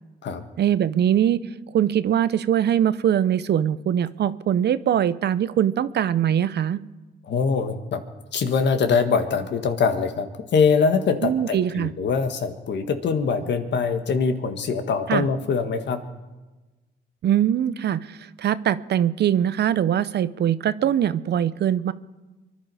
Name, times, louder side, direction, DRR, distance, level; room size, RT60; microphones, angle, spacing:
voice 1, 0.6-1.4 1.7-6.8 11.2-11.9 15.1-15.3 17.2-21.9, right 10 dB, 60° right, 15 dB, 0.6 m, -22 dB
voice 2, 7.3-8.0 8.3-16.0, left 5 dB, 60° left, 7 dB, 1.6 m, -23 dB
24.5 x 11.5 x 4.9 m, 1.1 s
cardioid pair, 90°, 20 cm